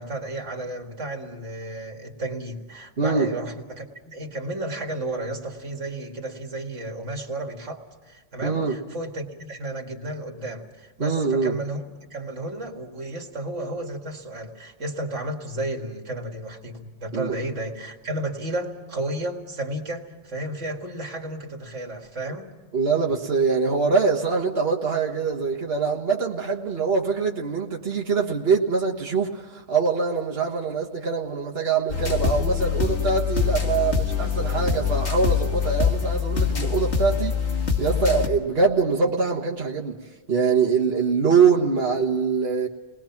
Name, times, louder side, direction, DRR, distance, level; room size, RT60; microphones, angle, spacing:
voice 1, 0.0-11.8 12.1-22.5, right 1 dB, 85° right, 3 dB, 2.4 m, -33 dB
voice 2, 3.0-3.3 8.4-8.8 11.0-11.6 17.1-17.4 22.7-40.0 40.3-42.7, right 5 dB, 55° right, 0 dB, 1.7 m, -23 dB
sound 1, 31.9-38.3, left 6 dB, 65° left, 2.1 m, -24 dB
30.0 x 20.5 x 5.9 m, 1.3 s
omnidirectional pair, 1.2 m